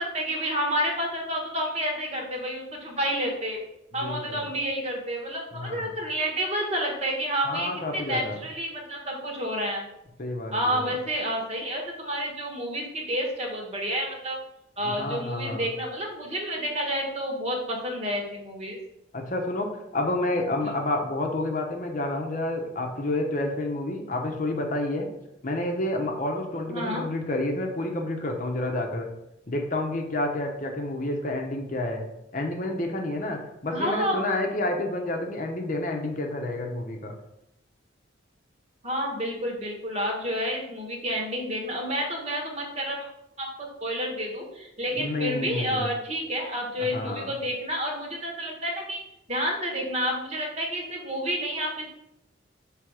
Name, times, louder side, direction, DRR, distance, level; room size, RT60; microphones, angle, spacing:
voice 1, 0.0-3.6 3.9-9.9 10.5-14.4 14.8-18.8 20.6-20.7 26.7-27.0 33.7-34.2 38.8-43.1 43.4-49.0 49.3-51.9, equal, 35° right, 1 dB, 1.3 m, -30 dB
voice 2, 4.0-4.4 5.5-5.9 7.5-8.4 10.2-10.9 14.8-15.7 19.1-25.1 25.4-29.1 29.5-32.0 32.3-37.1 44.9-45.9 46.9-47.3, left 1 dB, 40° left, 2 dB, 0.8 m, -29 dB
6.2 x 3.4 x 4.8 m, 0.85 s
head